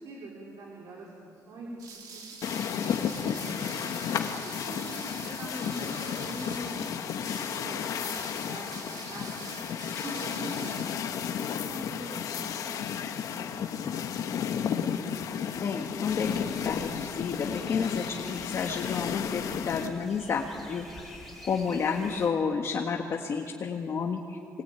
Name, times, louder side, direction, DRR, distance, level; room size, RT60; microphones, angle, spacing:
voice 1, 0.0-2.2 2.5-2.7 3.2-3.5 4.4-7.1 7.5-9.5 10.0-10.9 11.2-14.3, right 1 dB, 65° right, -3 dB, 4.3 m, -44 dB
sound 1, 1.8-10.8, right 5 dB, 80° right, 3.9 m, -45 dB
sound 2, 2.4-19.9, left 8 dB, 60° left, 1.5 m, -33 dB
voice 2, 15.5-21.1 21.4-24.6, left 5 dB, 45° left, 1 dB, 1.7 m, -31 dB
sound 3, 16.1-22.3, left 1 dB, ahead, 4.9 m, -49 dB
27.0 x 21.0 x 9.1 m, 2.5 s
cardioid pair, 155°, 7 cm